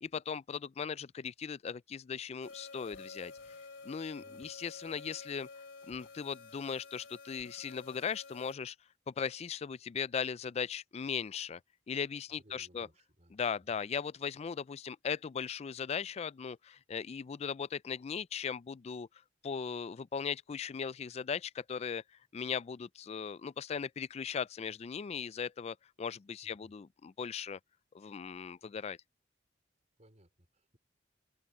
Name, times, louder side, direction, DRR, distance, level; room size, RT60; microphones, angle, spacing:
voice 1, 0.0-3.3 3.8-5.5 5.9-8.8 9.1-11.6 11.9-12.9 13.3-19.1 19.4-22.0 22.3-27.6 27.9-29.0, left 6 dB, 35° left, 0.3 m, -38 dB
sound 1, 2.4-8.5, left 4 dB, 80° left, 2.9 m, -51 dB
voice 2, 4.2-4.5 12.3-13.3 26.4-26.7 30.0-30.8, right 1 dB, 40° right, 4.3 m, -62 dB
head